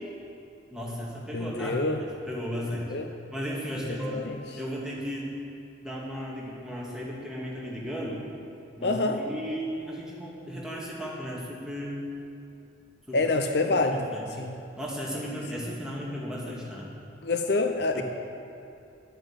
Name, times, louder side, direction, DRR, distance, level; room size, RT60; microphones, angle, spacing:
voice 1, 0.7-1.8 2.2-3.0 3.3-5.3 5.8-8.2 8.8-12.0 13.1-13.2 13.6-14.3 14.8-16.9 17.9-18.0, equal, 5° right, -5 dB, 2.3 m, -35 dB
voice 2, 1.3-2.0 2.6-3.1 3.9-4.4 8.8-9.2 13.1-14.1 14.4-14.6 17.2-18.0, left 3 dB, 60° left, 5 dB, 0.7 m, -27 dB
12.0 x 9.0 x 7.2 m, 2.8 s
head